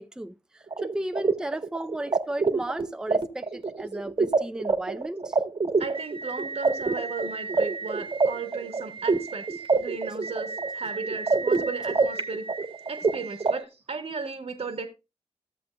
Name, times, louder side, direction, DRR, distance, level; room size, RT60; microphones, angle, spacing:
voice 1, 0.0-5.4, right 1 dB, 5° right, 0.5 m, -35 dB
sound 1, 0.7-13.5, right 4 dB, 50° right, 1.3 m, -27 dB
voice 2, 5.8-12.5 12.9-14.9, right 4 dB, 70° right, 1.4 m, -35 dB
14.0 x 7.4 x 2.2 m
cardioid pair, 60°, 12 cm